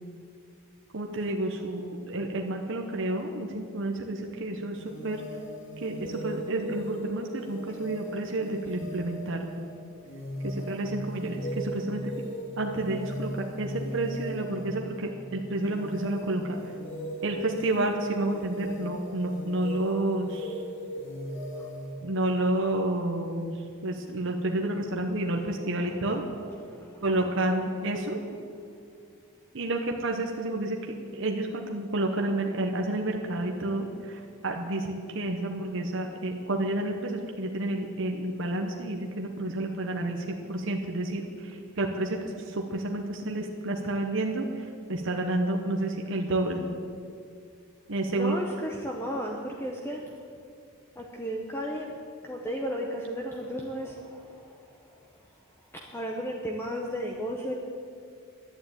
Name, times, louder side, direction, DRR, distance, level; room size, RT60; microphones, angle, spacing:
voice 1, 0.9-5.2 5.8-9.5 10.4-12.0 12.6-16.4 17.2-20.6 22.0-23.5 23.8-26.2 27.0-28.2 29.5-44.4 44.9-46.7 47.9-48.3, right 2 dB, 55° right, 2 dB, 1.0 m, -30 dB
sound 1, 4.7-21.9, equal, 55° left, 2.6 m, -38 dB
voice 2, 26.6-27.1 48.1-50.1 51.0-52.0 52.2-55.1 55.6-57.5, equal, 10° left, 0 dB, 0.9 m, -35 dB
11.0 x 9.4 x 9.0 m, 2.4 s
head